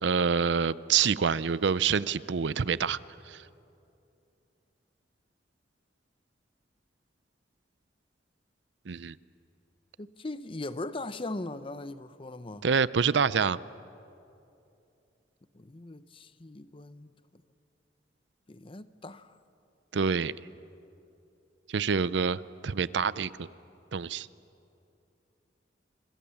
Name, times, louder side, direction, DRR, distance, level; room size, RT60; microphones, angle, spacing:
voice 1, 0.0-3.0 3.3-3.4 8.9-9.2 12.6-13.6 19.9-20.3 21.7-23.5 23.9-24.3, right 6 dB, 70° right, 0.5 m, -27 dB
voice 2, 10.0-12.7 15.5-17.4 18.5-19.4, left 2 dB, 30° left, 0.7 m, -40 dB
27.0 x 25.0 x 7.1 m
head